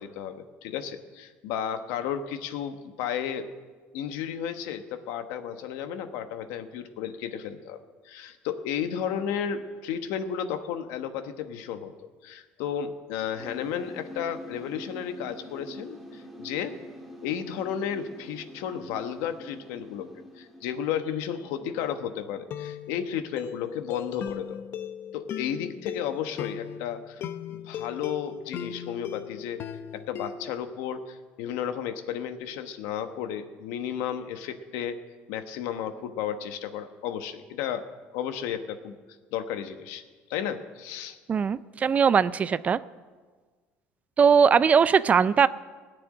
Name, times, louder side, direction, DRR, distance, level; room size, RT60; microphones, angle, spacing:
voice 1, 0.0-3.5 3.9-7.8 8.0-11.9 12.2-16.7 17.2-20.1 20.4-24.6 25.1-27.2 27.5-29.6 29.9-35.0 35.3-37.9 38.1-39.0 39.3-40.0 40.3-41.2, left 8 dB, 85° left, 9 dB, 1.1 m, -33 dB
sound 1, 13.4-22.2, equal, ahead, 1.8 m, -45 dB
sound 2, 21.6-21.9 22.5-30.5, left 9 dB, 50° left, 0.7 m, -38 dB
voice 2, 41.3-42.8 44.2-45.5, right 6 dB, 30° right, 16 dB, 0.4 m, -20 dB
17.0 x 6.9 x 9.8 m, 1.4 s
cardioid pair, 130°, 5 cm